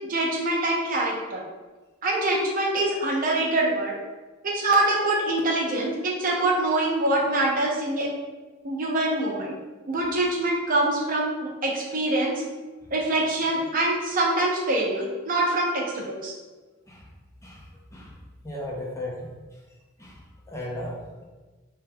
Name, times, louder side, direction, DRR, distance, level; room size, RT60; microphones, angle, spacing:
voice 1, 0.1-1.4 2.0-3.9 4.4-8.1 8.6-9.6 9.9-12.4 12.9-16.3, right 2 dB, 45° right, -1 dB, 0.7 m, -24 dB
voice 2, 18.4-19.3 20.0-20.2 20.5-21.2, left 1 dB, 15° left, -3 dB, 0.6 m, -35 dB
5.2 x 2.9 x 2.2 m, 1.2 s
head